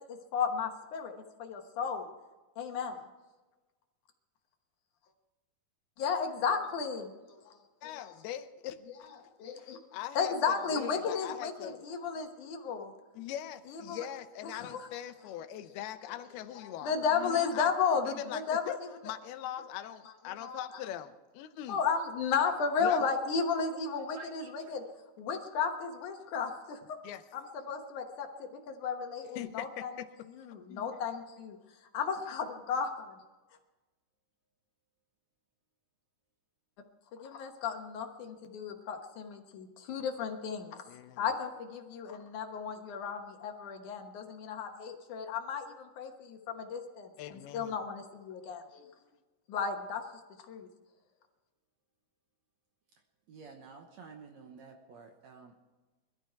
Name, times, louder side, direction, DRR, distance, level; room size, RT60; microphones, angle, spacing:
voice 1, 0.0-2.1 2.6-3.0 6.0-7.5 7.8-8.1 9.4-9.8 10.2-12.9 13.7-14.1 14.5-14.9 16.6-18.7 20.4-20.6 21.7-24.8 25.2-27.0 27.3-29.9 30.4-31.6 31.9-33.2 37.1-40.8 41.2-48.9 49.5-50.0 50.5-50.7, left 6 dB, 65° left, 4 dB, 2.3 m, -34 dB
voice 2, 7.8-9.1 9.6-11.8 13.1-17.7 18.1-21.8 22.8-23.0 27.0-27.2 29.4-30.1 40.9-41.2 47.2-47.7, left 11 dB, 85° left, 11 dB, 2.8 m, -42 dB
voice 3, 24.1-24.7 53.3-55.6, right 4 dB, 65° right, 3 dB, 1.9 m, -51 dB
21.5 x 13.0 x 4.6 m, 1.2 s
omnidirectional pair, 4.4 m